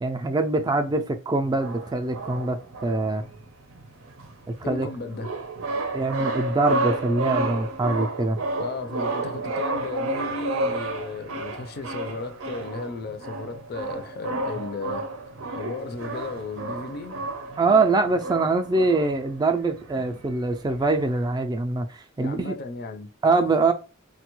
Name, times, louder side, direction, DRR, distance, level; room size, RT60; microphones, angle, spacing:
voice 1, 0.0-3.2 4.5-4.9 5.9-8.4 17.6-22.5 23.2-23.7, right 3 dB, 20° right, 0.3 m, -23 dB
sound 1, 1.4-21.3, right 2 dB, 90° right, 0.6 m, -31 dB
voice 2, 4.6-5.3 8.6-15.0 15.5-17.3 22.2-23.1, left 3 dB, 50° left, 0.4 m, -34 dB
3.9 x 2.2 x 3.0 m
head